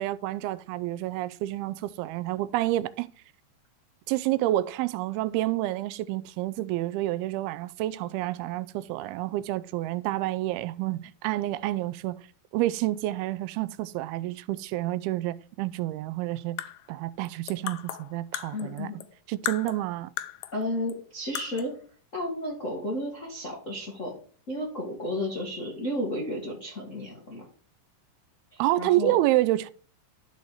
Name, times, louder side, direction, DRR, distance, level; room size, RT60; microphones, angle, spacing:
voice 1, 0.0-3.1 4.1-12.2 12.5-16.6 16.9-18.9 19.3-20.1 28.6-29.7, right 16 dB, 85° right, 2.5 m, -29 dB
sound 1, 16.4-19.1 19.5-20.6 20.9-21.0 21.4-21.8, left 14 dB, 80° left, 2.1 m, -36 dB
voice 2, 18.5-19.0 20.5-21.7 22.1-24.1 24.5-27.4 28.5-29.2, left 1 dB, 40° left, 1.1 m, -32 dB
12.5 x 4.1 x 4.7 m
omnidirectional pair, 4.4 m